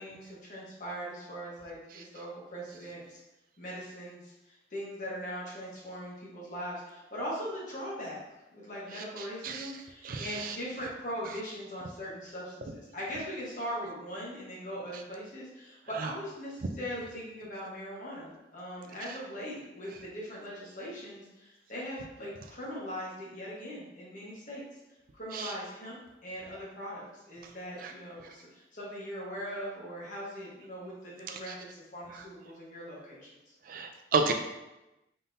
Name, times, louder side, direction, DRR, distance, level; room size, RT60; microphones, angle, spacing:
voice 1, 0.0-3.2 3.6-8.2 8.5-24.6 25.1-33.2 33.5-33.6, equal, 45° left, -5 dB, 1.2 m, -40 dB
voice 2, 8.9-9.7 10.0-10.6 11.3-11.4 16.0-16.1 19.1-19.2 25.3-25.5 27.4-27.5 27.8-27.9 28.2-28.3 31.3-31.5 32.1-32.2 33.7-34.3, right 4 dB, 50° right, 5 dB, 0.3 m, -33 dB
3.8 x 3.6 x 2.7 m, 0.98 s
head